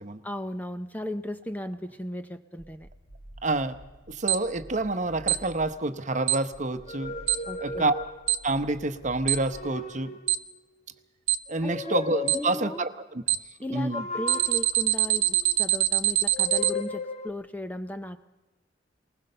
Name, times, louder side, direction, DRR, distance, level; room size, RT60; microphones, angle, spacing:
voice 1, 0.2-2.9 7.5-7.9 11.6-12.0 12.3-12.9 13.6-18.2, left 1 dB, 10° left, 9 dB, 0.6 m, -36 dB
sound 1, 2.6-5.8 6.5-9.8, right 1 dB, 75° left, 6.6 m, -50 dB
voice 2, 3.4-3.7 4.1-7.1 7.6-7.9 8.4-10.1 11.5-13.2 13.7-14.0, right 2 dB, 40° right, 10 dB, 0.9 m, -28 dB
Alarm, 4.3-4.4 5.3-5.4 6.3-6.4 7.3-7.4 8.3-8.4 9.3-9.4 10.3-10.4 11.3-11.4 12.3-12.4 13.3-13.4 14.3-16.7, right 15 dB, 85° right, 0.6 m, -22 dB
sound 2, 6.8-8.6 9.2-10.5 11.5-12.8 13.9-15.7 16.3-17.3, left 3 dB, 40° left, 1.0 m, -36 dB
20.0 x 20.0 x 6.7 m, 1.1 s
head